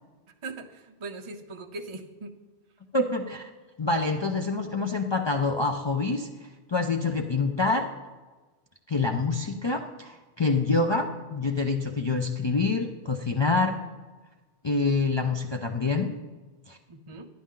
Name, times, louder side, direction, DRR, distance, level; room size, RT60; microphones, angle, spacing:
voice 1, 0.4-2.3 16.9-17.3, right 3 dB, 35° right, 5 dB, 0.5 m, -40 dB
voice 2, 2.9-3.5 3.8-6.3 6.7-7.9 8.9-13.8 14.6-16.2 16.7-16.8, left 3 dB, 35° left, 3 dB, 0.4 m, -26 dB
12.0 x 10.0 x 3.7 m, 1.3 s
omnidirectional pair, 1.1 m